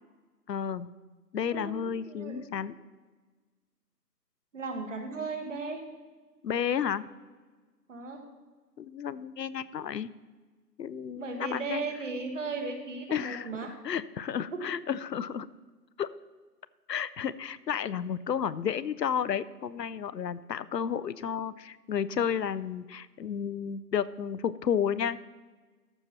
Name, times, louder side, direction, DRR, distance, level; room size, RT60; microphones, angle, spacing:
voice 1, 0.5-0.9 1.3-2.7 6.4-7.1 8.8-10.1 10.8-11.8 13.1-15.5 16.0-16.1 16.9-25.2, left 8 dB, 75° left, 16 dB, 0.6 m, -32 dB
voice 2, 1.5-2.4 4.5-5.8 7.9-8.3 11.2-13.7 14.5-14.6, right 3 dB, 50° right, 4 dB, 1.5 m, -36 dB
13.5 x 5.6 x 4.2 m, 1.4 s
figure-of-eight pair, 150°, 50 cm